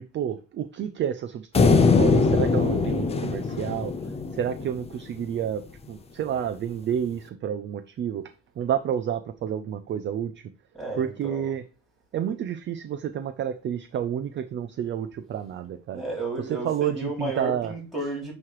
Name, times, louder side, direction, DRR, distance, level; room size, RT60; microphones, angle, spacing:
voice 1, 0.0-3.9 4.3-8.3 8.6-10.3 11.0-11.6 12.1-16.0 16.5-17.7, right 9 dB, 35° right, 0.5 m, -30 dB
sound 1, 1.5-4.9, left 4 dB, 20° left, 0.5 m, -22 dB
voice 2, 10.7-11.5 15.9-18.3, right 2 dB, ahead, 3.3 m, -32 dB
9.5 x 3.2 x 4.7 m
cardioid pair, 150°, 34 cm